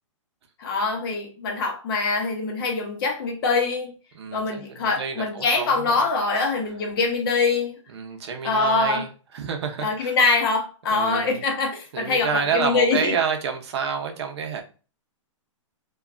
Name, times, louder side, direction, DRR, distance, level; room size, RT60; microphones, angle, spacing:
voice 1, 0.6-3.9 4.3-7.7 8.4-9.1 9.8-13.1, left 4 dB, 45° left, 0.8 m, -24 dB
voice 2, 4.1-5.9 7.9-9.1 9.3-10.2 10.9-11.4 11.9-14.6, right 6 dB, 55° right, 0.7 m, -28 dB
2.9 x 2.3 x 2.4 m
hypercardioid pair, 160°, 17 cm